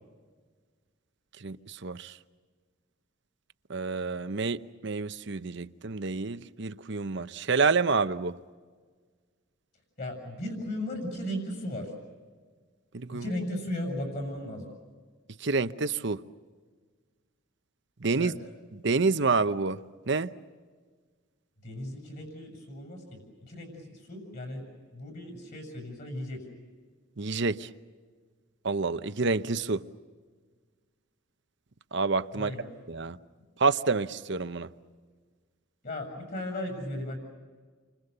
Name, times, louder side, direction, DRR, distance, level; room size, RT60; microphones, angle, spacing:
voice 1, 1.4-2.1 3.7-8.4 12.9-13.3 15.4-16.2 18.0-18.3 18.8-19.8 20.1-20.3 27.2-27.7 28.6-29.8 31.9-32.5 32.9-33.2 33.6-34.7, right 4 dB, 60° right, 0.9 m, -28 dB
voice 2, 10.0-11.9 13.1-14.7 18.1-18.3 21.6-23.2 23.5-24.6 24.9-26.5 32.3-32.7 35.8-37.2, left 1 dB, 45° left, 6.9 m, -36 dB
30.0 x 25.0 x 6.8 m
head